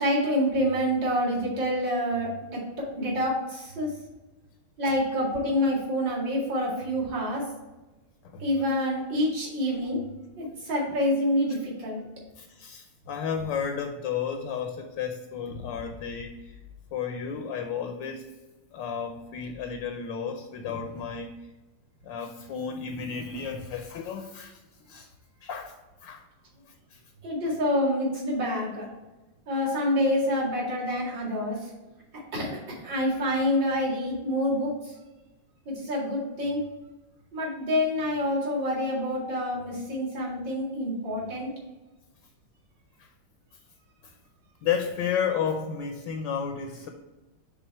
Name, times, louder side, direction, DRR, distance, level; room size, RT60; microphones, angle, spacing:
voice 1, 0.0-2.6 3.0-3.9 4.8-7.4 8.4-10.0 10.4-12.0 27.2-28.9 29.5-31.7 32.3-34.9 35.7-36.6 37.3-41.5, equal, 55° right, -6 dB, 2.8 m, -27 dB
voice 2, 12.4-16.6 16.9-18.3 18.7-21.3 22.0-25.1 25.4-25.7 26.0-26.2 26.9-27.0 43.0-43.1 44.0-44.1 44.6-46.9, left 7 dB, 70° left, 5 dB, 1.1 m, -32 dB
6.2 x 3.9 x 4.6 m, 1.1 s
omnidirectional pair, 2.4 m